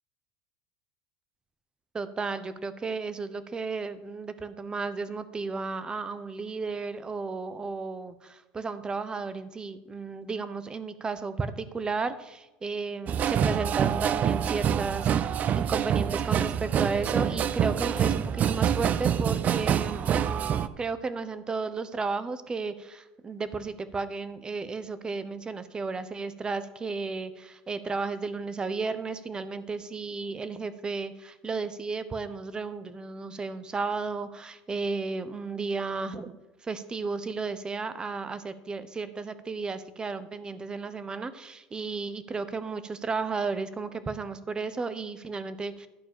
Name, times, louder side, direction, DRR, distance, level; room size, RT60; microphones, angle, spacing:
voice 1, 1.9-36.4 36.6-45.9, right 4 dB, 20° right, 13 dB, 0.9 m, -33 dB
sound 1, 13.1-20.7, right 9 dB, 40° right, 0.5 m, -26 dB
11.5 x 4.5 x 7.0 m, 1.1 s
supercardioid pair, 105°, 4 cm